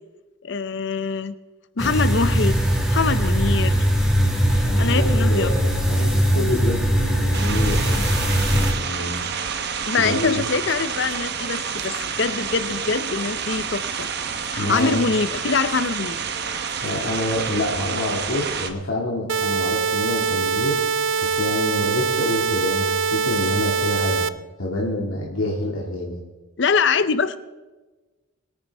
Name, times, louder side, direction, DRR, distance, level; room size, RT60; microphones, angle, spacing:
voice 1, 0.4-1.3 1.8-2.6 2.9-3.9 4.8-5.5 9.9-14.1 14.5-16.2 26.6-27.4, left 4 dB, 60° left, 14 dB, 0.6 m, -23 dB
sound 1, 1.8-8.7, equal, 5° right, 2.0 m, -20 dB
voice 2, 4.6-7.9 8.7-9.3 10.0-10.4 14.6-15.1 16.8-20.8 21.2-24.2 24.6-26.2, left 1 dB, 85° left, -3 dB, 2.2 m, -27 dB
sound 2, 7.3-18.7, right 6 dB, 55° right, 1.0 m, -29 dB
sound 3, 19.3-24.3, right 5 dB, 70° right, 0.4 m, -23 dB
22.0 x 9.8 x 3.5 m, 1.2 s
head